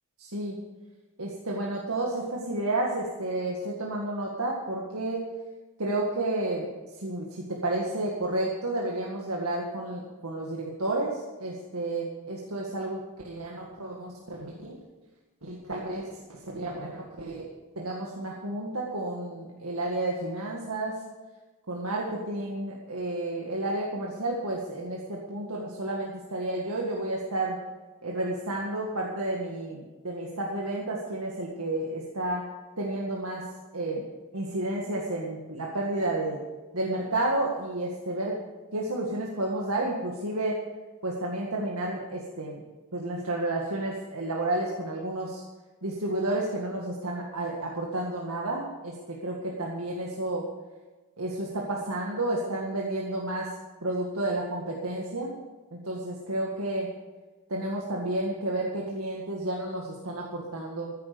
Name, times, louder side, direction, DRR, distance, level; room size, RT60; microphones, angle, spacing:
voice 1, 0.2-0.6 1.2-5.2 5.8-6.7 7.0-14.8 15.4-17.5 17.8-21.0 21.7-27.6 28.0-33.5 33.7-34.1 34.3-36.4 36.7-38.4 38.7-40.6 41.0-42.6 42.9-45.4 45.8-50.5 51.2-53.6 53.8-55.3 55.7-56.9 57.5-60.9, right 2 dB, 80° right, -2 dB, 2.0 m, -31 dB
14.5 x 10.5 x 6.9 m, 1.2 s
head